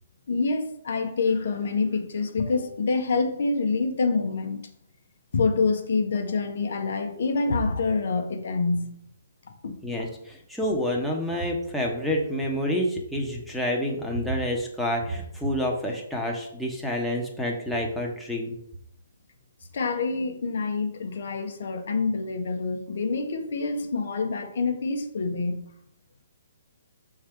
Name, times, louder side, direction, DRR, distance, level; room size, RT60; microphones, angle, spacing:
voice 1, 0.3-4.7 5.3-8.9 9.6-9.8 19.7-25.6, left 4 dB, 65° left, 0.9 m, -26 dB
voice 2, 9.8-18.6, equal, ahead, 1.1 m, -28 dB
6.4 x 3.8 x 4.5 m
figure-of-eight pair, 135°, 0 cm